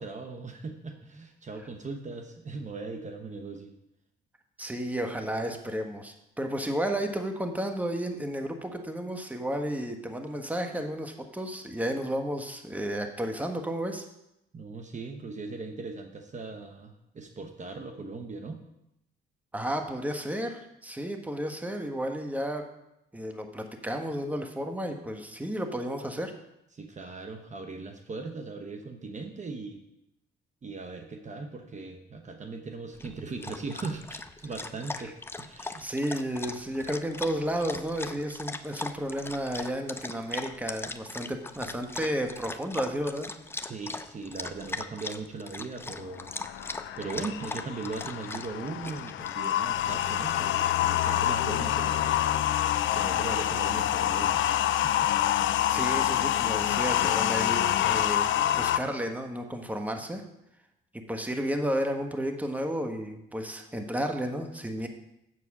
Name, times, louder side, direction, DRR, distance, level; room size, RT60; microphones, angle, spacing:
voice 1, 0.0-3.7 14.5-18.6 26.7-29.8 30.6-35.9 43.5-46.3 47.0-52.2 52.9-55.1, right 3 dB, 35° right, 5 dB, 1.0 m, -39 dB
voice 2, 4.6-14.1 19.5-22.7 23.1-26.3 35.0-35.1 35.6-43.3 55.7-60.2 60.9-64.9, equal, 10° right, 5 dB, 1.3 m, -32 dB
Dog, 32.9-50.3, left 2 dB, 10° left, 0.6 m, -40 dB
sound 1, 46.0-58.8, left 12 dB, 75° left, 0.5 m, -27 dB
7.9 x 7.4 x 6.0 m, 0.85 s
cardioid pair, 90°, 20 cm